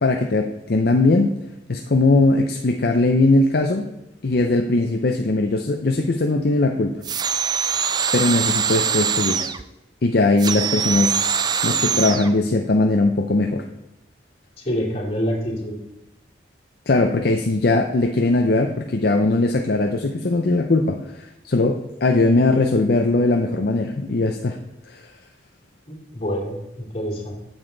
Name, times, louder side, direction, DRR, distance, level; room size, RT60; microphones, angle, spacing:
voice 1, 0.0-1.3 1.7-3.9 4.2-6.9 8.1-9.5 10.0-11.3 11.6-13.6 16.9-24.6 24.9-25.0, left 2 dB, 55° left, 4 dB, 0.6 m, -20 dB
sound 1, 7.0-9.6 10.4-12.3, right 7 dB, 20° right, 0.3 m, -23 dB
voice 2, 14.6-15.8 25.9-27.3, equal, 35° left, -4 dB, 2.5 m, -26 dB
9.0 x 7.2 x 3.9 m, 0.95 s
head